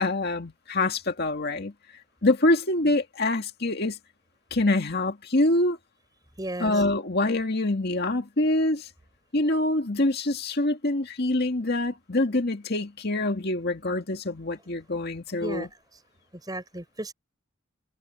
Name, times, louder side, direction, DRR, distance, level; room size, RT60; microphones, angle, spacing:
voice 1, 0.0-1.7 2.2-4.0 4.5-5.8 6.6-8.9 9.3-15.7, left 2 dB, 55° left, 2.0 m, -25 dB
voice 2, 6.4-6.7 15.4-15.7 16.3-17.1, right 1 dB, 20° right, 5.2 m, -34 dB
head